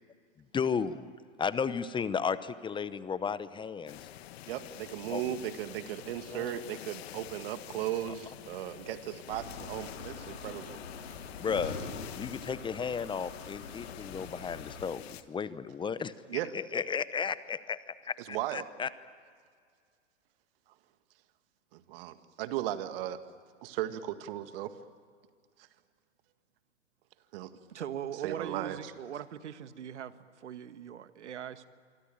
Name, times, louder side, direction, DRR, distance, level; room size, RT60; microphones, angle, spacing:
voice 1, 0.5-1.1 1.4-4.0 5.1-5.3 6.3-6.5 8.1-8.2 11.4-11.7 12.1-18.9, left 6 dB, 15° left, 16 dB, 0.8 m, -34 dB
sound 1, 3.9-15.2, left 12 dB, 60° left, 1.5 m, -48 dB
voice 2, 4.5-10.8 16.3-16.5 18.3-18.6 21.7-23.2 23.6-24.7 25.6-25.7 27.3-27.5 28.2-28.8, right 12 dB, 50° right, 10 dB, 1.9 m, -36 dB
sound 2, 9.3-14.9, left 4 dB, 85° left, 3.7 m, -44 dB
voice 3, 27.7-31.7, right 9 dB, 75° right, 12 dB, 1.5 m, -41 dB
26.5 x 25.0 x 8.8 m, 2.1 s
hypercardioid pair, 110°, 35 cm